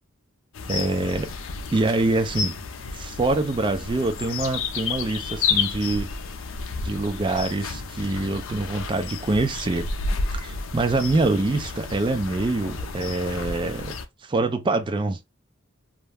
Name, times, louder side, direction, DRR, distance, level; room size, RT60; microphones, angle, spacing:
sound 1, 0.5-14.0, left 4 dB, 70° left, 0.4 m, -31 dB
voice 1, 0.7-1.3 1.7-2.5 2.9-6.1 6.8-9.8 10.3-13.9 14.2-15.2, right 2 dB, 25° right, 0.3 m, -25 dB
2.4 x 2.1 x 3.2 m
head